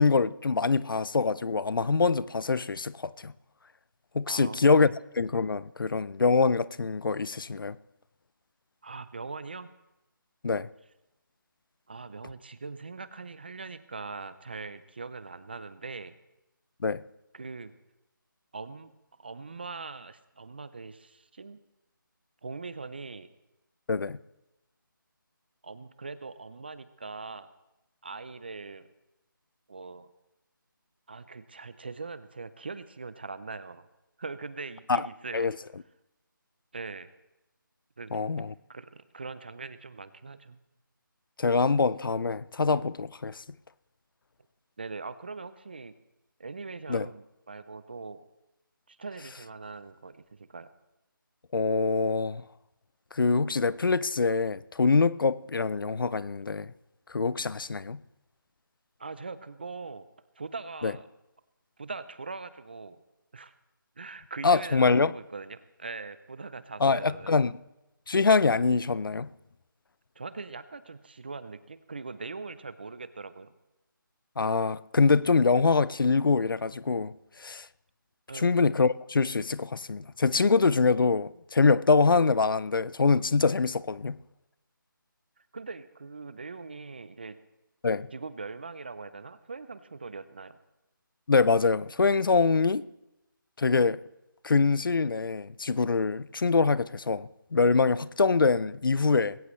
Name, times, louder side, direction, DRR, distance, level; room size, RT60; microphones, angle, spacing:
voice 1, 0.0-3.3 4.1-7.8 10.4-10.7 16.8-17.0 23.9-24.2 34.9-35.0 35.3-35.5 38.1-38.5 41.4-43.4 46.9-47.1 51.5-52.4 53.1-56.7 57.1-58.0 60.8-60.9 64.4-65.1 66.8-67.5 68.1-69.3 74.4-77.1 77.4-77.7 78.3-84.2 87.8-88.1 91.3-92.8 93.6-94.0 94.4-99.4, left 4 dB, 75° left, 0.5 m, -24 dB
voice 2, 4.3-4.8 8.8-9.7 11.9-16.2 17.3-17.7 18.5-18.9 19.2-21.6 22.4-23.3 25.6-27.5 28.0-28.9 29.7-30.1 31.1-33.9 34.2-35.5 36.7-37.1 38.0-38.2 38.7-40.6 44.8-45.9 46.4-48.2 48.9-50.7 59.0-60.1 60.4-61.1 61.8-63.0 63.3-63.5 64.0-67.4 70.2-73.5 78.3-78.6 85.5-87.4 88.1-90.6, right 4 dB, 30° right, 0.5 m, -41 dB
20.0 x 17.0 x 3.2 m
figure-of-eight pair, 175°, 11 cm